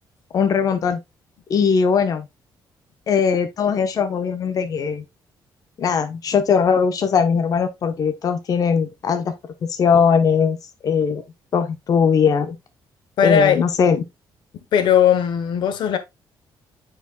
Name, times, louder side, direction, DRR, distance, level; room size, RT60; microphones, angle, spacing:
voice 1, 0.3-1.0 1.5-2.3 3.1-5.0 5.8-9.3 9.7-10.6 10.8-11.2 11.5-12.6 13.2-14.0, left 6 dB, 50° left, 0.9 m, -19 dB
voice 2, 13.2-13.6 14.7-16.0, left 8 dB, 75° left, 1.0 m, -17 dB
8.9 x 4.9 x 2.2 m
cardioid pair, 140°, 8 cm